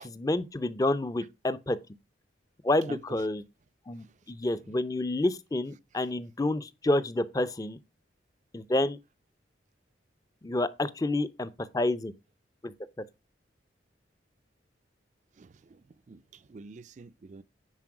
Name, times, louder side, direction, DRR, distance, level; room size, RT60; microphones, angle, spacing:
voice 1, 0.0-1.8 2.6-3.4 3.9-7.8 8.5-9.0 10.4-12.1 12.6-12.7, left 2 dB, 20° left, 0.5 m, -29 dB
voice 2, 15.4-17.4, right 4 dB, 40° right, 0.4 m, -48 dB
9.7 x 4.5 x 4.7 m
head